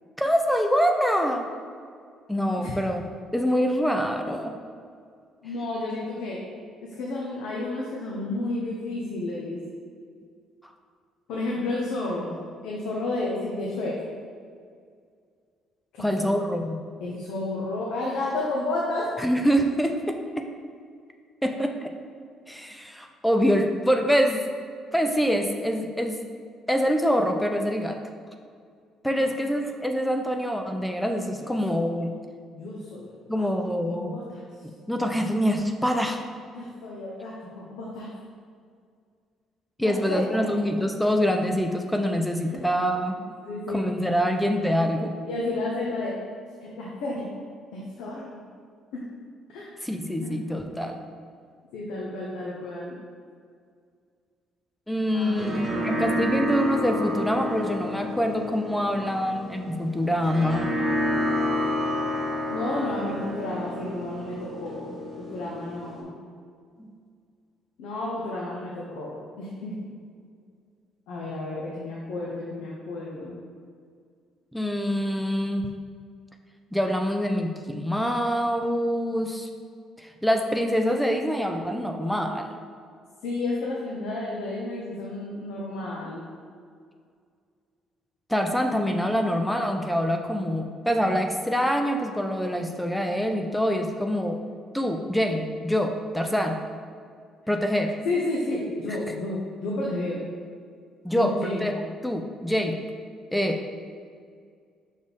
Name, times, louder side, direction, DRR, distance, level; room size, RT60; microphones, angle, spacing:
voice 1, 0.2-1.5 2.3-3.0 3.3-4.5 16.0-16.8 19.2-20.5 21.4-21.7 22.5-24.4 24.9-26.2 26.7-28.0 29.0-32.1 33.3-34.2 34.9-36.2 39.8-43.1 43.7-45.2 49.8-51.0 54.9-60.7 66.8-66.9 74.5-75.7 76.7-79.5 80.2-82.5 88.3-94.4 94.7-96.6 97.5-98.0 101.0-102.8 103.3-103.6, equal, 5° left, 4 dB, 0.4 m, -25 dB
voice 2, 5.4-6.4 6.8-9.6 11.3-13.9 15.9-16.4 17.0-19.1 29.2-29.3 31.3-31.6 32.5-33.5 33.8-34.4 36.5-38.1 39.8-40.5 42.5-42.6 43.4-43.9 45.2-46.1 46.6-47.3 47.7-48.4 48.9-49.0 49.5-49.7 50.2-50.3 51.7-52.9 55.1-56.3 62.5-66.1 67.8-69.7 71.1-73.4 83.2-86.2 98.0-100.2 101.1-101.7, left 2 dB, 85° left, -4 dB, 0.9 m, -31 dB
sound 1, 55.1-66.0, left 1 dB, 25° right, 1.4 m, -30 dB
6.3 x 4.1 x 3.6 m, 2.1 s
cardioid pair, 135°, 0 cm